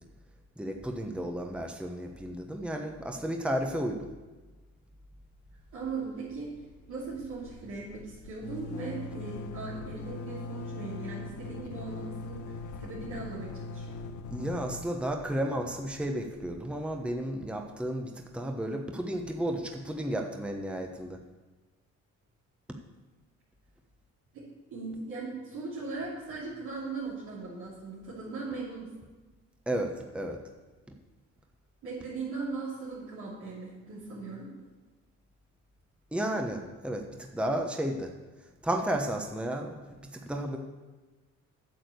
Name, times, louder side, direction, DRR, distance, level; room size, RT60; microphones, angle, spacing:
voice 1, 0.6-4.1 14.3-21.2 29.7-30.4 36.1-38.1 38.6-39.8 40.1-40.6, right 1 dB, 5° right, 3 dB, 1.1 m, -33 dB
sound 1, 5.4-5.9 6.2-6.3 6.5-17.2, left 3 dB, 75° left, 0.9 m, -42 dB
voice 2, 5.7-6.5 6.9-14.0 24.3-24.4 24.7-28.9 31.8-34.5, right 3 dB, 80° right, -9 dB, 3.1 m, -39 dB
8.9 x 7.6 x 6.6 m, 1.2 s
cardioid pair, 90°, 30 cm